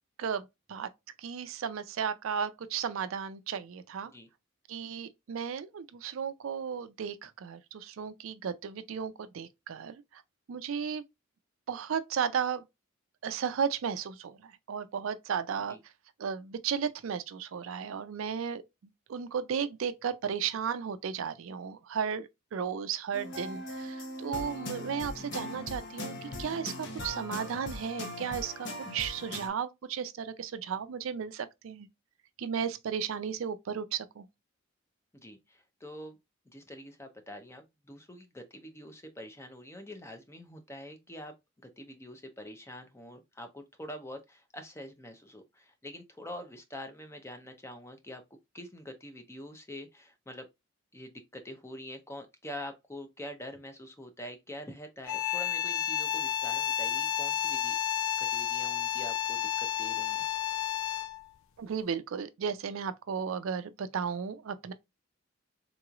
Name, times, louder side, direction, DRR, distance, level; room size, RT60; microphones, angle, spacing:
voice 1, 0.2-0.9 1.2-4.1 4.7-10.2 10.5-11.0 11.7-12.6 13.2-15.8 16.2-18.6 19.1-26.7 27.0-31.9 32.4-34.2 61.6-64.7, right 7 dB, 75° right, 0.4 m, -34 dB
sound 1, 23.1-29.5, left 1 dB, 60° left, 0.8 m, -40 dB
voice 2, 35.1-36.2 36.5-41.3 41.6-48.2 48.5-50.5 50.9-57.8 58.2-60.3, left 1 dB, 15° left, 0.5 m, -45 dB
sound 2, 55.0-61.3, left 12 dB, 80° left, 0.4 m, -31 dB
3.8 x 3.0 x 2.3 m
head